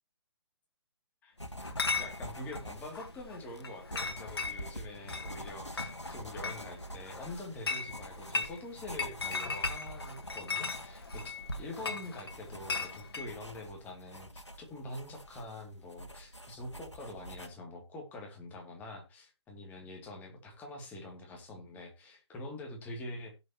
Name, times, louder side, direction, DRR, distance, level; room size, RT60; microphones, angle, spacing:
sound 1, 1.4-17.5, equal, 90° left, 1.6 m, -46 dB
Chatter / Chink clink, 1.6-13.3, left 4 dB, 60° left, 1.9 m, -38 dB
voice 1, 2.0-23.3, left 2 dB, 10° left, 2 dB, 2.5 m, -45 dB
16.5 x 7.1 x 2.9 m, 0.26 s
figure-of-eight pair, 135°, 15 cm